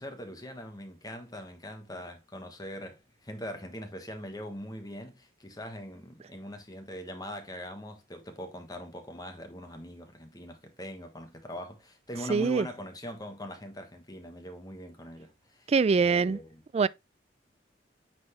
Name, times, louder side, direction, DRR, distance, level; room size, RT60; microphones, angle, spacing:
voice 1, 0.0-16.6, equal, 20° left, 1.3 m, -42 dB
voice 2, 12.3-12.7 15.7-16.4 16.7-16.9, right 5 dB, 35° right, 0.3 m, -23 dB
8.5 x 4.1 x 3.1 m
head